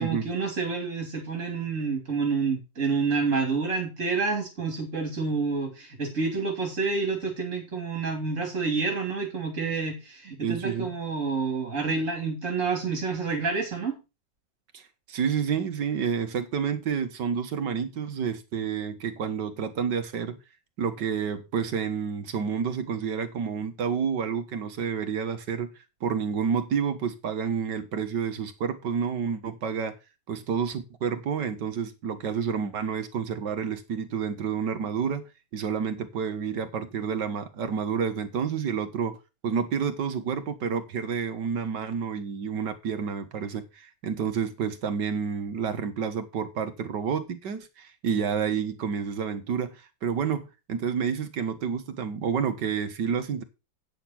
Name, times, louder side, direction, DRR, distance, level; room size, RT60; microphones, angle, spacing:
voice 1, 0.0-14.0, right 4 dB, 40° right, 3.0 m, -28 dB
voice 2, 10.4-10.9 14.7-14.8 15.1-20.4 20.8-25.7 26.0-29.9 30.3-35.3 35.5-39.2 39.4-53.4, right 6 dB, 65° right, 1.9 m, -29 dB
9.3 x 6.6 x 5.7 m
omnidirectional pair, 2.1 m